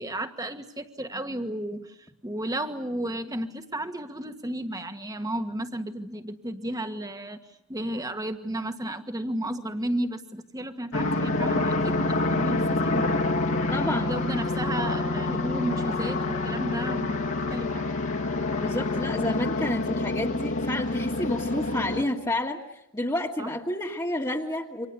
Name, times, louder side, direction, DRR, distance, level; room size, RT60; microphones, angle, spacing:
voice 1, 0.0-7.4 7.7-13.1 13.7-17.8 23.4-23.5, right 1 dB, 15° right, 7 dB, 1.5 m, -33 dB
sound 1, 10.9-22.0, left 2 dB, 65° left, 2.6 m, -27 dB
voice 2, 13.7-14.2 18.6-22.6 22.9-24.9, left 1 dB, 15° left, -2 dB, 1.7 m, -29 dB
29.0 x 25.5 x 6.9 m, 0.83 s
head